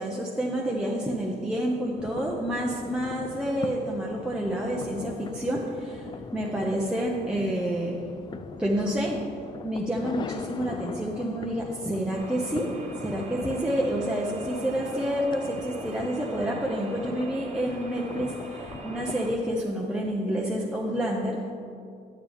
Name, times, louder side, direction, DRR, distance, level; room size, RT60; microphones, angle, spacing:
voice 1, 0.0-8.0 8.6-9.2 9.6-12.7 13.0-21.4, right 1 dB, 5° right, -3 dB, 0.7 m, -29 dB
sound 1, 2.0-19.6, left 5 dB, 25° left, 0.3 m, -40 dB
sound 2, 12.1-19.3, right 2 dB, 40° right, 1.0 m, -42 dB
8.7 x 8.6 x 3.5 m, 2.3 s
cardioid pair, 110°, 17 cm